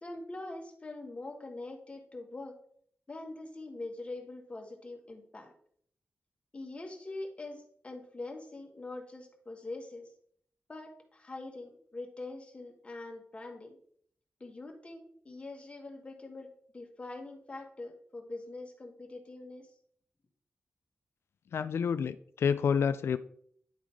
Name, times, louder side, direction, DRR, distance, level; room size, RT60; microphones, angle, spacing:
voice 1, 0.0-2.6 3.1-5.5 6.5-10.1 10.7-13.8 14.4-19.7, left 2 dB, 30° left, 1.6 m, -43 dB
voice 2, 21.5-23.2, left 6 dB, 80° left, 0.3 m, -29 dB
10.5 x 3.9 x 4.7 m
wide cardioid pair, 120°, 4 cm